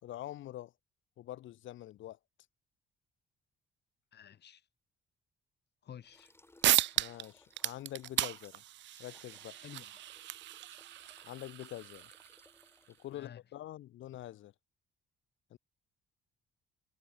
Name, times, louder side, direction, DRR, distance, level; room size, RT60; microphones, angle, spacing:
voice 1, 0.0-0.7 1.2-2.2 7.0-8.6 9.0-9.6 11.2-12.1 13.0-14.5 15.5-15.6, left 13 dB, 75° left, 1.1 m, -45 dB
voice 2, 4.1-4.7 5.8-6.3 9.5-10.0 13.1-13.4, left 9 dB, 60° left, 1.9 m, -51 dB
sound 1, 6.0-13.2, left 2 dB, 10° left, 3.0 m, -65 dB
sound 2, 6.3-6.4 6.6-7.3 7.5-12.7, right 14 dB, 65° right, 0.5 m, -35 dB
cardioid pair, 90°, 20 cm